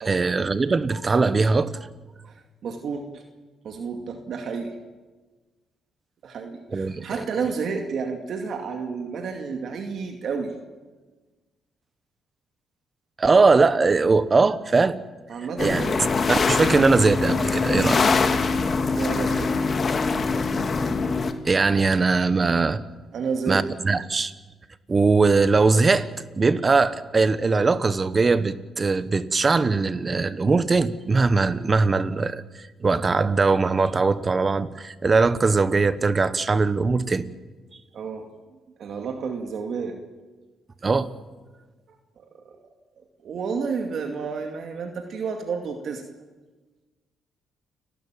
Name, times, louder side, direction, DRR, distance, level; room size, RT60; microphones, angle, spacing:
voice 1, 0.0-1.7 6.7-7.2 13.2-15.0 15.6-15.8 16.3-18.2 21.4-22.8 23.5-24.3 24.9-26.1 26.4-32.4 32.8-37.3 40.8-41.1, right 4 dB, 30° right, 14 dB, 1.2 m, -21 dB
voice 2, 2.3-3.2 3.6-4.7 6.2-10.5 15.3-16.1 18.9-19.8 23.1-23.6 37.9-38.2 38.8-40.0 42.2-42.6 43.2-46.0, right 5 dB, 60° right, 3 dB, 2.4 m, -31 dB
sound 1, 15.6-21.3, left 4 dB, 40° left, 2.0 m, -23 dB
30.0 x 12.5 x 9.1 m, 1.3 s
cardioid pair, 90°, 0 cm